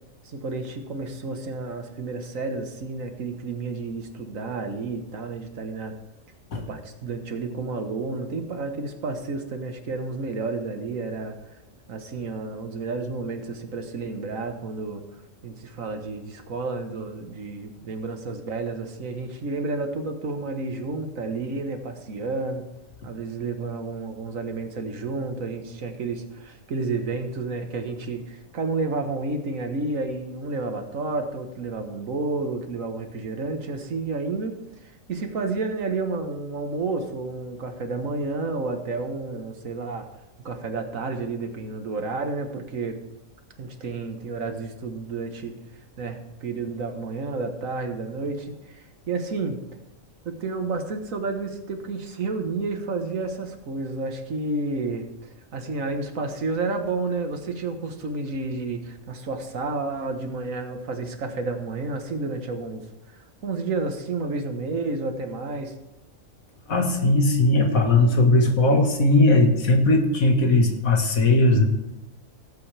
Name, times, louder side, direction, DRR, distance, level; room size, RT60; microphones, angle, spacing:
voice 1, 0.2-5.9 6.5-11.4 11.9-15.0 15.4-22.6 23.0-40.1 40.4-43.0 43.6-45.5 46.0-49.6 50.2-62.8 63.1-65.7, right 3 dB, 75° right, 6 dB, 1.7 m, -31 dB
voice 2, 66.7-71.7, left 2 dB, 85° left, 3 dB, 2.1 m, -18 dB
17.0 x 8.5 x 3.4 m, 0.96 s
omnidirectional pair, 1.4 m